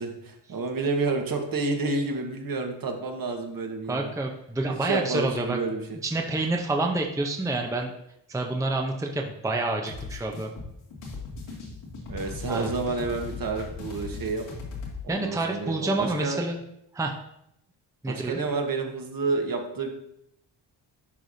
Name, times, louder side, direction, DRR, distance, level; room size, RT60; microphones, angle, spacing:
voice 1, 0.0-4.1 4.8-5.8 12.1-14.5 15.0-16.4 18.1-19.9, right 3 dB, 50° right, 3 dB, 1.3 m, -29 dB
voice 2, 3.9-5.6 6.0-7.9 8.3-10.5 12.5-12.7 15.1-16.6 16.9-17.2 18.0-18.4, right 2 dB, 5° right, 2 dB, 0.7 m, -28 dB
sound 1, 9.9-15.0, left 4 dB, 80° left, 2.1 m, -38 dB
10.5 x 4.7 x 2.7 m, 0.78 s
cardioid pair, 85°, 45 cm